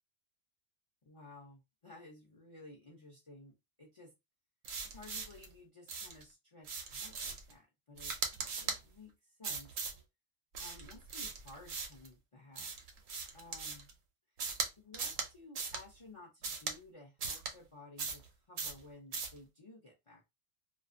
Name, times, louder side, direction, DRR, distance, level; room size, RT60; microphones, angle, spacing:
voice 1, 1.0-4.1 4.8-9.7 10.6-12.7 13.3-13.9 14.8-20.3, left 2 dB, 35° left, -1 dB, 0.5 m, -55 dB
sound 1, 4.6-5.5 5.9-6.2 6.6-7.5 8.0-8.8 9.4-10.0 10.5-12.1 12.6-13.9 14.4-14.7 14.9-15.3 15.6-15.8 16.4-16.8 17.2-17.5 18.0-18.3 18.6-18.8 19.1-19.4, right 5 dB, 80° right, 1.0 m, -39 dB
2.4 x 2.3 x 2.5 m, 0.22 s
omnidirectional pair, 1.3 m